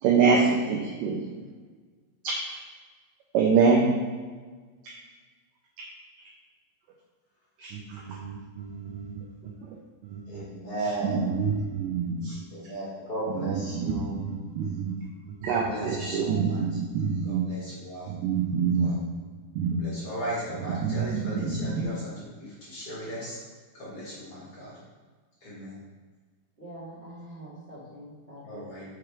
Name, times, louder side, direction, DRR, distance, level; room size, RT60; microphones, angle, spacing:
voice 1, 0.0-1.4 2.2-2.6 3.3-3.9 4.8-4.9 7.6-9.5 10.0-10.4 11.0-12.4 13.3-15.0 15.2-17.5 18.1-19.0 19.5-19.8 20.6-21.8, right 5 dB, 90° right, 0 dB, 1.9 m, -26 dB
voice 2, 10.3-11.3 12.5-14.1 15.5-16.6 17.2-18.1 18.8-18.9 19.8-23.4 23.7-24.8 25.4-25.8 28.4-28.8, right 1 dB, 45° left, -9 dB, 2.3 m, -36 dB
voice 3, 26.6-28.7, right 1 dB, 35° right, -11 dB, 1.0 m, -44 dB
6.0 x 4.8 x 4.7 m, 1.4 s
omnidirectional pair, 4.7 m